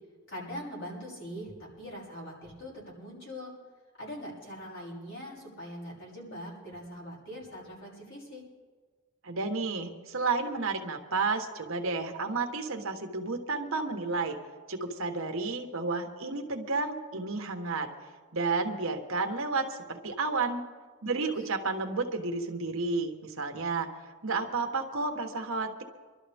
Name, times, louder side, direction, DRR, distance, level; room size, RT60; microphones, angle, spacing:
voice 1, 0.3-3.5 4.0-8.4 21.2-21.3, equal, 60° left, -4 dB, 6.2 m, -42 dB
voice 2, 9.2-14.4 14.7-17.9 18.3-20.6 21.0-23.9 24.2-25.8, right 3 dB, 60° right, 4 dB, 1.4 m, -31 dB
25.5 x 12.5 x 3.5 m, 1.4 s
head